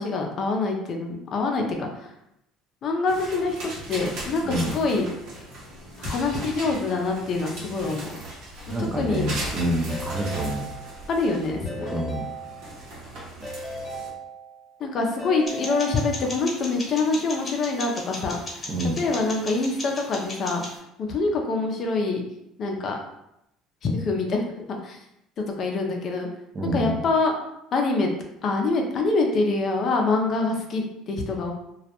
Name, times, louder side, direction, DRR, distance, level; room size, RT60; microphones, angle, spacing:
voice 1, 0.0-2.1 2.8-5.1 6.0-8.1 8.8-9.3 11.1-11.9 14.8-18.4 19.0-20.6 21.0-22.2 22.6-23.0 23.8-25.0 25.4-26.3 26.7-27.3 27.7-28.1 28.4-31.5, left 3 dB, 50° left, 2 dB, 0.5 m, -25 dB
sound 1, 3.1-14.1, right 1 dB, 70° right, 0.8 m, -38 dB
voice 2, 8.7-10.6 11.9-12.2 18.7-19.0 26.5-27.0, right 1 dB, 35° right, 0 dB, 0.6 m, -27 dB
Keyboard (musical) / Ringtone, 9.9-11.2 11.7-13.0 13.4-14.8 15.2-16.5, right 1 dB, ahead, 0.9 m, -37 dB
sound 2, 15.5-20.8, left 2 dB, 30° left, 1.1 m, -37 dB
2.3 x 2.0 x 2.8 m, 0.82 s
supercardioid pair, 80°, 0 cm